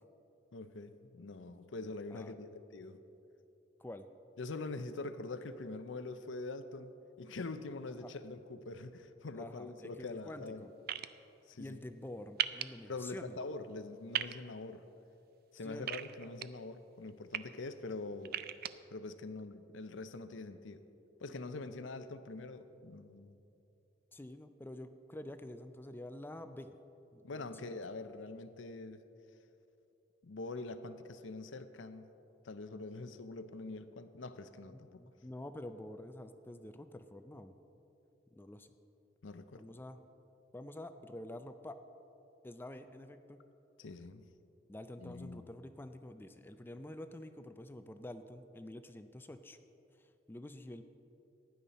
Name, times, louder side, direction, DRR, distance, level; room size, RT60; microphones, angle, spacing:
voice 1, 0.5-3.0 4.4-10.6 11.5-11.8 12.9-14.8 15.5-18.4 18.9-20.8 21.2-23.4 27.2-29.0 30.2-32.1 32.4-35.0 39.2-39.6 43.8-44.3 45.0-45.5, left 3 dB, 75° left, 11 dB, 0.6 m, -44 dB
voice 2, 9.4-10.7 11.6-13.4 15.6-15.9 21.3-21.7 24.1-26.7 27.1-27.8 34.7-37.5 38.3-38.7 39.6-40.0 40.5-41.8 42.4-43.4 44.7-49.6 49.9-50.8, left 1 dB, 10° left, 9 dB, 0.4 m, -48 dB
sound 1, 10.9-11.1 12.4-12.6 14.1-14.3 15.9-16.4 17.1-17.4 18.2-18.7, right 11 dB, 50° right, 0.4 m, -35 dB
15.5 x 10.5 x 4.1 m, 2.9 s
head